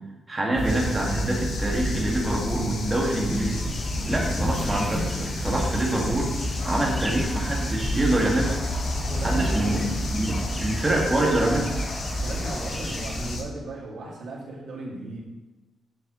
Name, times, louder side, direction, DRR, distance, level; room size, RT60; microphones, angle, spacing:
voice 1, 0.3-3.7 4.1-6.3 6.6-8.6 9.2-9.8 10.1-11.7, right 1 dB, 20° right, -2 dB, 1.9 m, -25 dB
sound 1, 0.6-13.4, left 3 dB, 75° left, 1.2 m, -38 dB
sound 2, 0.6-13.4, equal, 35° left, 1.3 m, -30 dB
sound 3, 3.4-13.4, equal, ahead, 0.3 m, -37 dB
voice 2, 9.1-9.8 12.2-15.2, right 2 dB, 65° right, -4 dB, 2.3 m, -36 dB
9.1 x 6.6 x 3.1 m, 1.2 s
cardioid pair, 120°, 0 cm